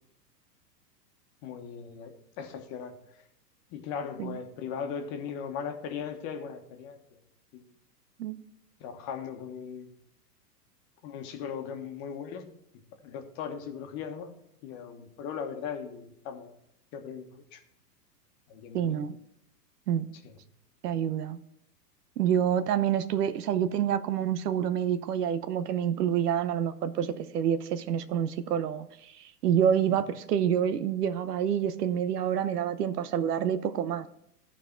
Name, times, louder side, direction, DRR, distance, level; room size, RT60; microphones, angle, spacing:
voice 1, 1.4-3.0 3.7-7.0 7.5-7.6 8.8-9.9 11.0-12.5 13.0-14.3 14.6-16.5 16.9-17.6 18.5-19.0 20.2-20.3 29.9-30.0, left 7 dB, 40° left, 5 dB, 1.4 m, -38 dB
voice 2, 18.7-19.2 19.9-20.1 20.8-21.4 22.2-28.9 29.4-34.1, right 9 dB, 70° right, 12 dB, 0.9 m, -27 dB
14.0 x 4.8 x 4.5 m, 0.76 s
hypercardioid pair, 125°, 49 cm